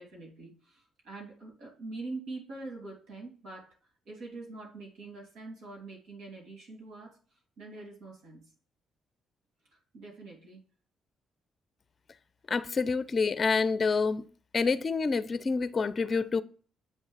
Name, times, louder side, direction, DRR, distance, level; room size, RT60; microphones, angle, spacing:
voice 1, 0.0-3.8 4.0-7.2 7.6-8.5 9.9-10.6, right 3 dB, 85° right, 2.9 m, -44 dB
voice 2, 12.5-14.2 14.5-16.4, left 4 dB, 35° left, 0.5 m, -27 dB
7.9 x 3.6 x 6.5 m
cardioid pair, 90°, 0 cm